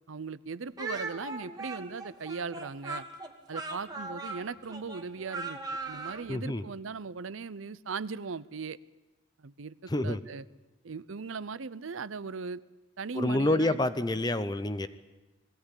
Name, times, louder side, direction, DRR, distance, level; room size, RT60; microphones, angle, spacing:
voice 1, 0.0-3.0 3.5-5.6 5.9-8.8 9.4-10.4 10.8-12.6 13.0-13.8, right 5 dB, 80° right, 18 dB, 0.7 m, -38 dB
Speech, 0.8-6.3, right 3 dB, 20° right, 1.7 m, -39 dB
voice 2, 6.3-6.6 9.9-10.2 13.1-14.9, left 1 dB, 20° left, 12 dB, 0.6 m, -28 dB
20.5 x 16.0 x 9.9 m, 1.1 s
head